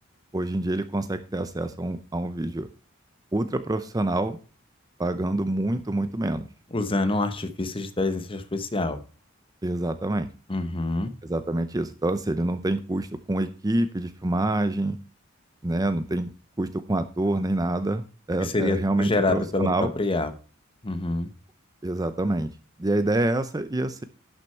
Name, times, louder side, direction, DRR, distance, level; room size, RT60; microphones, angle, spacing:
voice 1, 0.3-2.7 3.3-4.4 5.0-6.4 9.6-10.3 11.2-15.0 15.6-16.3 16.6-19.9 21.8-22.5 22.8-24.0, right 1 dB, 20° right, 10 dB, 0.6 m, -26 dB
voice 2, 6.7-9.0 10.5-11.1 18.4-20.3 20.8-21.3, left 2 dB, 25° left, 9 dB, 1.0 m, -26 dB
11.5 x 6.3 x 4.4 m, 0.35 s
head